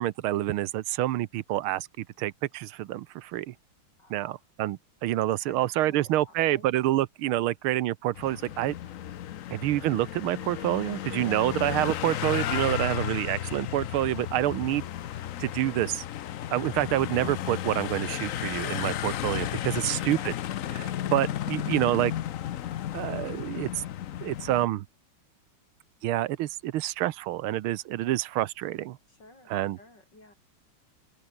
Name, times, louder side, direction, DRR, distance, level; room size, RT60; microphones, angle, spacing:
voice 1, 0.0-3.5 4.1-8.7 9.5-14.8 15.4-16.0 16.5-20.3 20.7-22.1 22.9-23.7 24.2-24.9 26.0-29.0 29.5-29.8, right 14 dB, 80° right, 1.6 m, -27 dB
voice 2, 4.0-4.4 5.5-6.7 11.1-11.5 19.8-20.3 29.1-30.3, left 2 dB, 55° left, 8.6 m, -52 dB
sound 1, 8.1-24.7, left 11 dB, 90° left, 0.7 m, -33 dB
open air
omnidirectional pair, 2.3 m